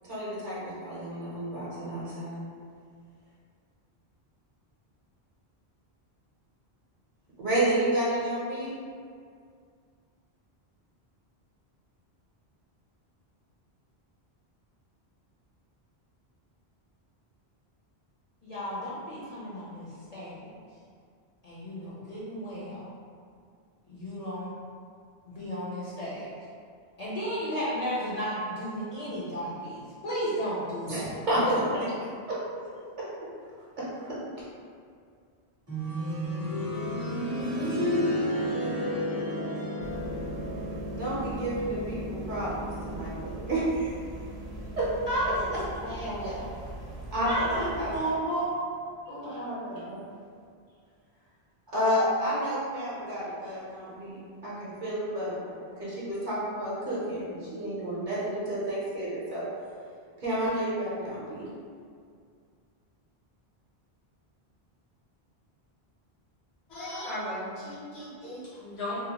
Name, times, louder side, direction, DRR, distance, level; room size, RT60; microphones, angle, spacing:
voice 1, 0.0-2.4 7.4-8.7 30.9-31.4 32.3-32.4 33.0-33.1 33.8-34.2 38.6-38.8 41.0-44.0 44.8-44.9 47.1-48.2 49.1-50.0 51.7-59.5 60.2-61.5, right 1 dB, 50° right, -8 dB, 0.8 m, -31 dB
voice 2, 18.4-20.6 21.4-22.9 23.9-24.5 25.3-26.3 27.0-31.1 45.1-45.5 45.8-46.5 47.3-48.5 49.1-49.4, equal, 50° left, -9 dB, 0.5 m, -33 dB
sound 1, 35.7-46.4 46.7-46.8 47.7-47.8, equal, 20° right, 0.6 m, -33 dB
sound 2, 39.8-48.0, right 2 dB, 80° right, 0.8 m, -42 dB
voice 3, 66.7-69.0, left 1 dB, 80° left, -10 dB, 1.2 m, -36 dB
2.6 x 2.1 x 2.8 m, 2.2 s
omnidirectional pair, 1.1 m